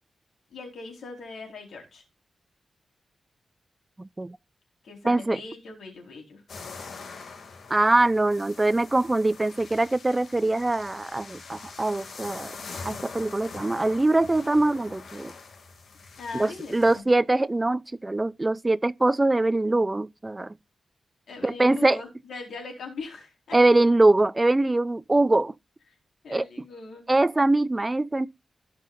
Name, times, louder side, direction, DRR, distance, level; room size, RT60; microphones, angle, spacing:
voice 1, 0.5-2.0 4.8-6.4 16.2-17.1 21.3-23.6 26.2-27.0, left 3 dB, 85° left, 4.2 m, -40 dB
voice 2, 4.0-4.4 5.0-5.4 7.7-12.6 12.8-15.3 16.3-20.5 21.4-22.0 23.5-25.5 26.3-26.5 27.1-28.3, right 2 dB, 15° right, 0.4 m, -23 dB
sound 1, 6.5-17.0, left 4 dB, 70° left, 2.3 m, -43 dB
16.5 x 5.7 x 2.5 m
wide cardioid pair, 135°, 0 cm